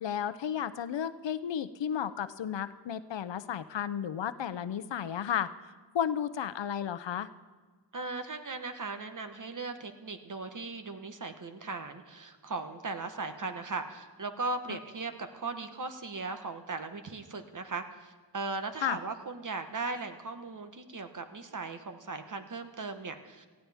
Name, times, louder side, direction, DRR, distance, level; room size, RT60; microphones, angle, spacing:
voice 1, 0.0-5.5 5.9-7.3 18.8-19.0, left 9 dB, 75° left, 14 dB, 0.7 m, -33 dB
voice 2, 7.9-23.5, right 3 dB, 45° right, 7 dB, 1.1 m, -38 dB
19.0 x 15.0 x 3.5 m, 1.4 s
wide cardioid pair, 95°, 44 cm